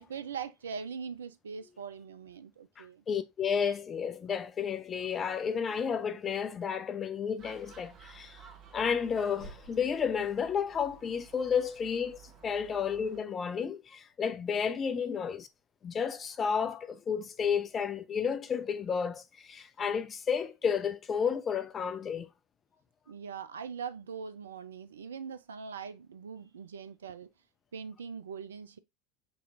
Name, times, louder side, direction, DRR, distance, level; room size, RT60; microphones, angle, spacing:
voice 1, 0.0-3.0 23.1-27.3 27.7-28.8, right 6 dB, 80° right, 0.4 m, -41 dB
voice 2, 2.8-8.4 8.7-15.5 15.8-22.3, left 7 dB, 30° left, 0.6 m, -32 dB
Gull seagull, 7.4-13.2, right 6 dB, 40° right, 1.2 m, -53 dB
6.0 x 2.9 x 2.5 m
figure-of-eight pair, 75°, 0 cm